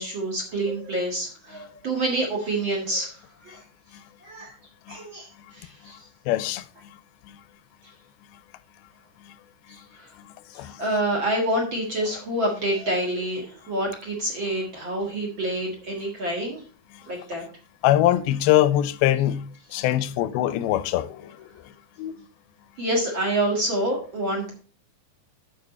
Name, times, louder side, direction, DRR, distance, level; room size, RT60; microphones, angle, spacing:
voice 1, 0.0-3.2 3.4-3.6 4.2-4.5 4.9-6.0 10.0-10.1 10.6-16.6 17.1-17.4 22.8-24.5, right 1 dB, 45° right, 1.9 m, -27 dB
voice 2, 6.3-6.6 7.3-7.4 9.3-9.4 10.6-10.8 17.8-21.5 22.0-22.2, left 13 dB, 90° left, 2.5 m, -23 dB
9.1 x 6.4 x 4.2 m
omnidirectional pair, 4.3 m